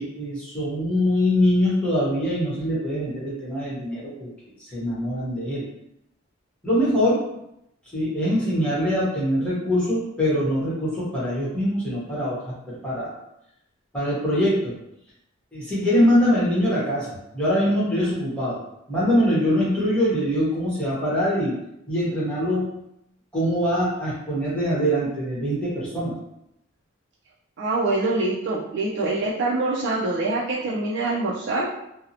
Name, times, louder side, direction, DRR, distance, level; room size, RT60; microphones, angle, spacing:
voice 1, 0.0-4.3 4.7-5.6 6.6-7.2 7.9-13.1 13.9-14.7 15.5-18.6 18.9-21.6 21.9-22.8 23.3-26.1, equal, 5° left, -8 dB, 0.9 m, -23 dB
voice 2, 27.6-31.7, right 2 dB, 60° right, -6 dB, 0.4 m, -25 dB
2.6 x 2.0 x 2.7 m, 0.81 s
head